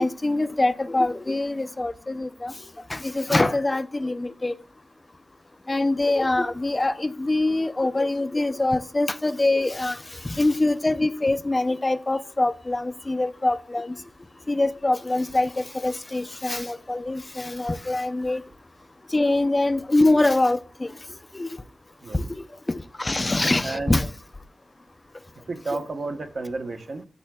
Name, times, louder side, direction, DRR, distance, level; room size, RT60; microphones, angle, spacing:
voice 1, 0.0-2.5 2.9-4.5 5.7-13.9 14.5-18.4 19.1-20.9 21.3-21.5 22.1-24.1, left 2 dB, 20° left, 0.4 m, -24 dB
voice 2, 23.6-24.0 25.5-27.1, right 3 dB, 55° right, 0.9 m, -31 dB
13.0 x 7.0 x 2.2 m
wide cardioid pair, 125°, 0 cm